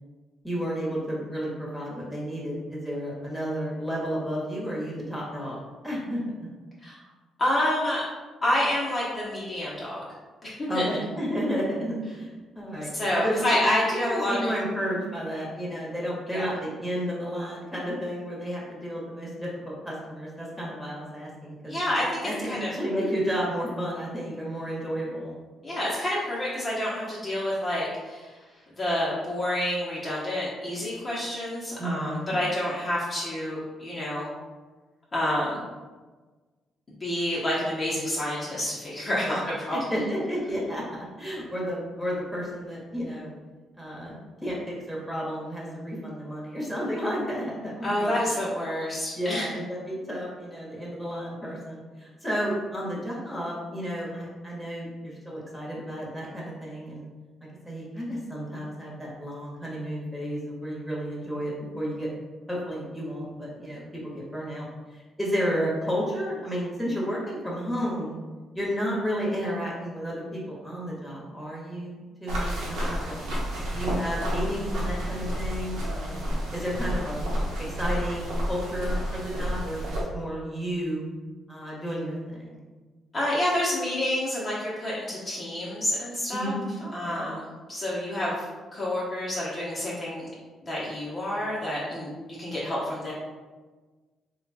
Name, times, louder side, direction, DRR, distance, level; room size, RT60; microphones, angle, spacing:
voice 1, 0.4-6.5 10.7-13.6 13.9-21.7 22.2-25.3 31.8-32.4 39.3-39.4 39.7-43.3 43.8-44.1 44.4-48.4 49.2-57.0 57.6-62.1 62.5-68.2 68.5-73.2 73.7-76.2 76.5-77.3 77.6-81.0 81.5-82.4 86.3-87.2, equal, ahead, -6 dB, 1.2 m, -32 dB
voice 2, 7.4-8.0 8.4-10.0 10.4-10.8 12.9-14.5 16.3-16.5 21.7-22.7 25.6-28.4 28.8-34.3 35.1-35.6 37.0-39.8 47.8-49.5 83.1-86.5 86.9-88.5 88.7-90.3 90.7-93.1, left 1 dB, 25° left, -7 dB, 0.9 m, -28 dB
sound 1, 72.3-80.0, equal, 90° right, 1.0 m, -30 dB
3.1 x 2.3 x 4.0 m, 1.3 s
cardioid pair, 90°, 0 cm